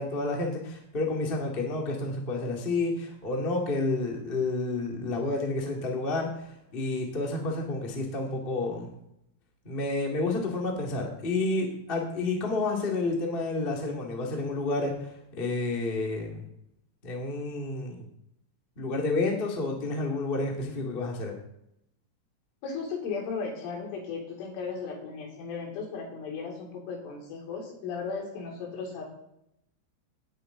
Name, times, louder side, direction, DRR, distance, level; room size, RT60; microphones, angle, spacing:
voice 1, 0.0-8.9 9.6-16.4 17.0-18.0 18.7-21.3, left 2 dB, 35° left, 0 dB, 0.8 m, -30 dB
voice 2, 22.6-29.0, left 5 dB, 90° left, -1 dB, 5.8 m, -36 dB
18.0 x 9.3 x 3.9 m, 0.79 s
omnidirectional pair, 5.4 m